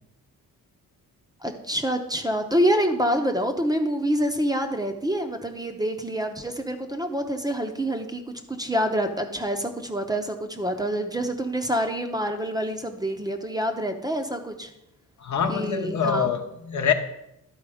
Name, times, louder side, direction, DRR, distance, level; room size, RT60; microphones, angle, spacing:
voice 1, 1.4-8.2 8.5-14.7 15.5-16.3, equal, 10° right, 5 dB, 0.8 m, -26 dB
voice 2, 15.2-16.9, left 7 dB, 55° left, 5 dB, 0.9 m, -25 dB
11.5 x 4.3 x 5.0 m, 0.84 s
cardioid pair, 100°, 34 cm